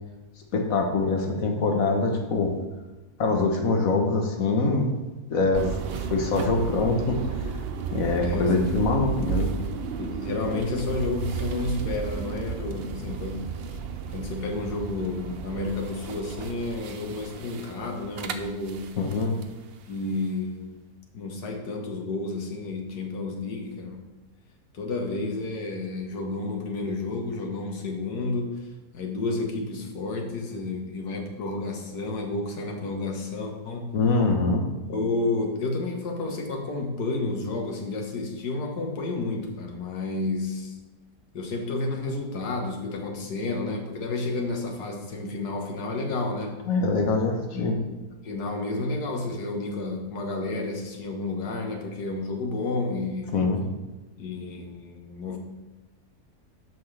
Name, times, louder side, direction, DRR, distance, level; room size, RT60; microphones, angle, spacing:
voice 1, 0.5-2.5 3.2-4.9 5.3-5.8 6.1-7.5 7.9-9.5 19.0-19.3 33.9-34.7 46.7-47.8 53.3-53.6, left 3 dB, 60° left, 2 dB, 1.6 m, -24 dB
sound 1, 5.5-19.5, right 6 dB, 65° right, 0.6 m, -33 dB
voice 2, 8.2-8.6 10.0-13.5 14.1-18.9 19.9-20.7 21.1-24.0 24.7-28.7 28.9-33.9 34.9-40.7 41.3-46.6 47.5-47.9 48.2-53.4 54.2-55.4, left 3 dB, 85° left, 2 dB, 1.8 m, -31 dB
11.5 x 5.9 x 3.3 m, 1.1 s
omnidirectional pair, 1.7 m